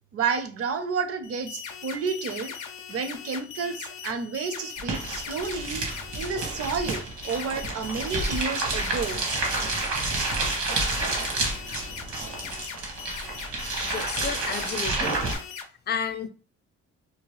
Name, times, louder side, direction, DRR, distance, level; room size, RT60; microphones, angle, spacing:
voice 1, 0.1-2.5 2.9-5.8 6.1-9.2, right 5 dB, 50° right, 0.6 m, -30 dB
sound 1, 1.2-15.6, left 7 dB, 90° left, 0.5 m, -40 dB
sound 2, 4.8-15.4, right 3 dB, 70° right, 1.1 m, -30 dB
voice 2, 13.8-15.3 15.9-16.3, left 7 dB, 35° left, 0.4 m, -32 dB
2.8 x 2.4 x 3.0 m
cardioid pair, 90°, 30 cm